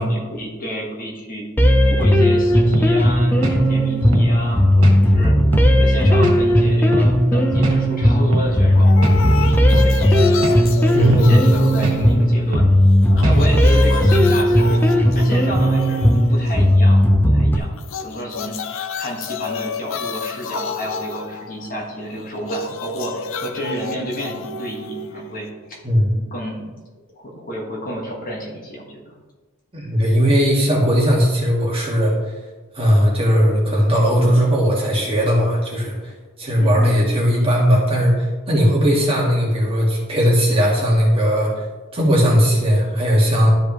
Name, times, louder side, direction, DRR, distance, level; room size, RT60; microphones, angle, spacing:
voice 1, 0.0-1.5 1.8-5.4 5.8-8.9 9.4-10.7 11.0-12.7 13.1-17.8 18.0-18.6 19.0-25.8 26.2-26.7 27.1-29.2 36.6-37.0, equal, 40° left, -2 dB, 1.6 m, -31 dB
sound 1, 1.6-17.6, equal, 10° left, 0.7 m, -15 dB
sound 2, 2.7-2.9 3.4-3.6 4.1-4.3 4.8-5.0 5.5-5.7 6.2-6.4 6.9-7.1 7.6-7.8 8.3-8.5 9.0-9.2 9.7-9.9 10.4-10.6 11.1-11.3 11.8-12.0 12.5-12.7 13.2-13.4, right 1 dB, 80° right, 1.7 m, -23 dB
sound 3, 8.7-12.7 13.0-16.8 17.8-25.8, left 4 dB, 60° left, 0.5 m, -30 dB
voice 2, 10.9-11.4 13.3-13.4 25.8-26.1 29.7-32.2 32.8-36.1 36.4-41.5 41.9-43.5, equal, 25° right, -3 dB, 1.9 m, -17 dB
12.5 x 5.1 x 3.1 m, 1.3 s
head